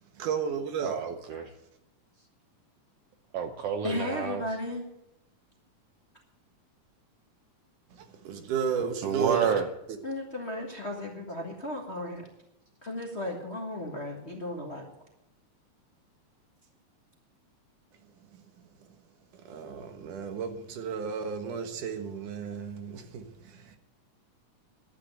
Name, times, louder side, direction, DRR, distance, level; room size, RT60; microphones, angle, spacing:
voice 1, 0.2-1.0 7.9-9.5 18.3-18.4 19.3-23.8, right 6 dB, 85° right, 2.9 m, -33 dB
voice 2, 0.8-1.5 3.3-4.4 9.0-9.7, right 7 dB, 65° right, 1.6 m, -29 dB
voice 3, 3.8-4.8 10.0-12.2 12.8-14.8, left 1 dB, 30° left, 1.3 m, -35 dB
11.5 x 8.6 x 9.0 m
omnidirectional pair, 3.5 m